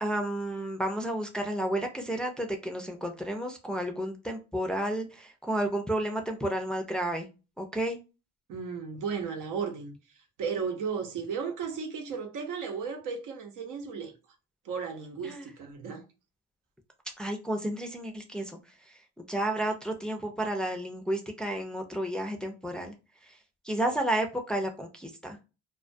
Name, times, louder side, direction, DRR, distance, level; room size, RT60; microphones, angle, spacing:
voice 1, 0.0-7.3 7.6-8.0 15.2-15.5 17.2-18.6 19.2-22.9 23.6-25.4, right 1 dB, 5° left, 0.5 m, -31 dB
voice 2, 8.5-10.0 10.4-14.1 14.6-16.0, right 6 dB, 75° right, 0.7 m, -34 dB
2.2 x 2.2 x 2.5 m
cardioid pair, 85°, 32 cm